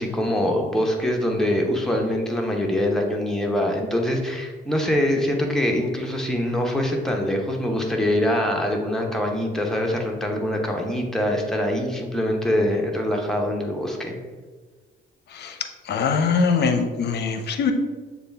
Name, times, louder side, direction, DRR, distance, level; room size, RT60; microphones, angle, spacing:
voice 1, 0.0-14.2, left 1 dB, ahead, 0 dB, 0.8 m, -24 dB
voice 2, 15.9-17.7, left 5 dB, 55° left, 6 dB, 0.6 m, -22 dB
6.8 x 2.3 x 3.3 m, 1.4 s
cardioid pair, 90°, 20 cm